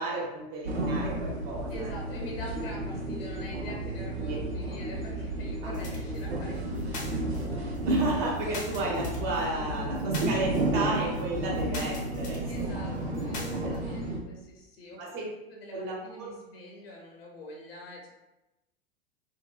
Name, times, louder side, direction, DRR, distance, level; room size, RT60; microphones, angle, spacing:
voice 1, 0.0-1.9 4.2-4.4 5.6-5.7 6.1-6.2 7.8-12.9 13.2-13.7 15.0-15.3 15.7-16.3, right 2 dB, 45° right, -3 dB, 1.1 m, -34 dB
sound 1, 0.6-14.2, right 2 dB, 85° right, 0.5 m, -32 dB
voice 2, 1.7-6.9 7.2-7.3 12.5-15.0 15.5-18.1, left 1 dB, 65° left, -1 dB, 0.7 m, -44 dB
sound 2, 5.6-13.8, left 3 dB, 25° left, 0.6 m, -41 dB
2.7 x 2.5 x 2.3 m, 0.97 s
figure-of-eight pair, 85°, 32 cm